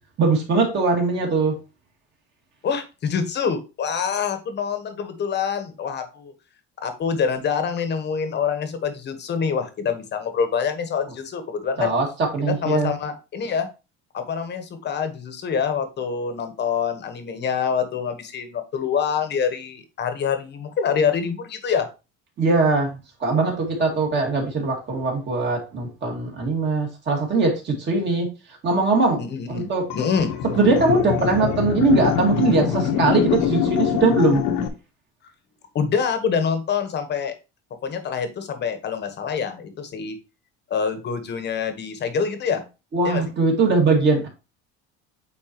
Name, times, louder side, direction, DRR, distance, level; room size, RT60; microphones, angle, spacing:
voice 1, 0.2-1.6 11.8-12.9 22.4-28.3 28.6-29.2 29.5-29.9 30.6-34.4 42.9-44.3, right 3 dB, 35° right, 0 dB, 2.1 m, -21 dB
voice 2, 2.6-6.3 6.8-11.9 12.6-13.7 14.1-21.9 29.2-30.4 35.7-37.3 37.8-40.2 40.7-42.6 43.0-43.2, left 6 dB, 35° left, 9 dB, 1.2 m, -26 dB
sound 1, 29.9-34.7, left 8 dB, 75° left, 1.2 m, -24 dB
8.9 x 4.2 x 2.9 m, 0.29 s
cardioid pair, 155°, 32 cm